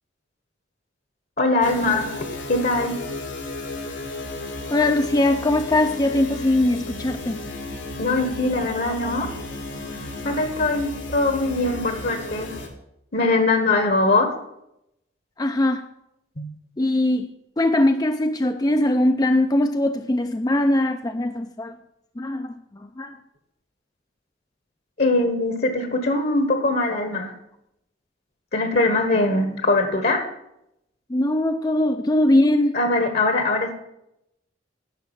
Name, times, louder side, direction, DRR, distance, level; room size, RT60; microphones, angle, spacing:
voice 1, 1.4-2.1 2.5-2.9 8.0-9.3 10.2-12.5 13.1-14.3 16.4-16.5 25.0-27.3 28.5-30.3 32.7-33.7, left 2 dB, 55° left, 1.4 m, -21 dB
sound 1, 1.6-12.7, left 2 dB, 85° left, 2.3 m, -34 dB
voice 2, 4.7-7.4 15.4-15.9 16.8-21.7 22.2-23.2 31.1-32.8, left 1 dB, 20° left, 0.5 m, -21 dB
10.5 x 6.1 x 9.0 m
head